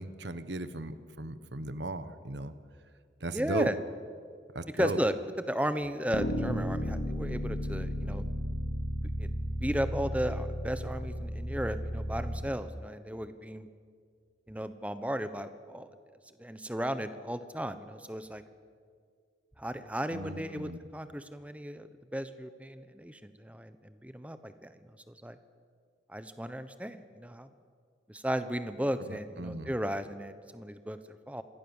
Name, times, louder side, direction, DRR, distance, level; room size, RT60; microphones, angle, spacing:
voice 1, 0.0-2.5 3.2-3.7 4.5-5.0 20.1-20.8 29.1-29.7, right 2 dB, 75° right, 12 dB, 1.3 m, -37 dB
voice 2, 3.3-3.8 4.7-8.3 9.2-9.3 9.6-13.7 14.5-15.9 16.4-18.4 19.6-25.4 26.1-27.5 28.1-31.4, equal, 5° right, 11 dB, 1.1 m, -35 dB
sound 1, 6.1-12.4, equal, 90° left, 4.3 m, -34 dB
27.5 x 22.0 x 7.3 m, 2.1 s
head